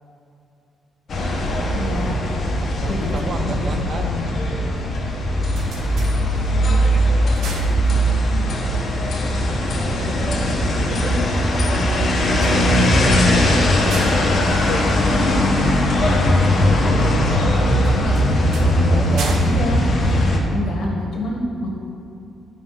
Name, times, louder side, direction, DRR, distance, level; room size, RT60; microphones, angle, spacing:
sound 1, 1.1-20.4, equal, 50° left, 1.3 m, -19 dB
voice 1, 1.7-2.2 2.9-3.7 4.0-4.3 19.4-19.8 20.5-21.7, left 2 dB, 70° left, 0 dB, 1.5 m, -27 dB
voice 2, 2.8-4.1 9.6-10.6 12.2-14.3 15.1-19.5, right 3 dB, 45° right, 5 dB, 0.8 m, -33 dB
sound 2, 5.2-6.7 7.1-8.4 12.2-15.7 17.8-20.8, right 3 dB, 70° right, 1.0 m, -36 dB
9.3 x 4.8 x 5.7 m, 2.6 s
cardioid pair, 90°, 0 cm